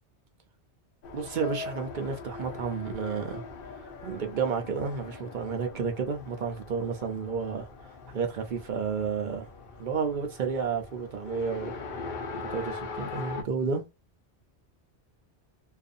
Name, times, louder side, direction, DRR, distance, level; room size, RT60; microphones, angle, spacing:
Race car auto racing, 1.0-13.4, left 4 dB, 60° left, 0.7 m, -41 dB
voice 1, 1.1-3.4 4.0-7.7 8.1-9.5 9.8-11.8 12.5-13.8, right 5 dB, 55° right, 0.6 m, -31 dB
2.5 x 2.4 x 2.5 m
omnidirectional pair, 1.2 m